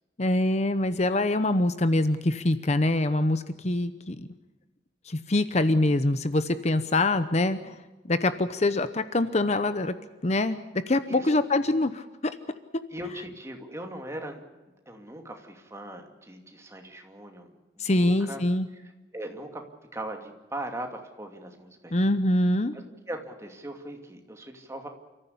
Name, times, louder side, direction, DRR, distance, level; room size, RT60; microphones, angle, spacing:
voice 1, 0.2-4.3 5.1-7.8 8.1-10.0 10.2-12.0 17.8-18.7 21.9-22.8, left 2 dB, 40° left, 12 dB, 0.9 m, -24 dB
voice 2, 12.9-14.4 14.9-17.5 17.8-18.4 18.7-19.6 19.9-22.0 22.7-24.9, right 1 dB, 15° right, 4 dB, 2.6 m, -39 dB
29.0 x 14.5 x 8.5 m, 1.2 s
head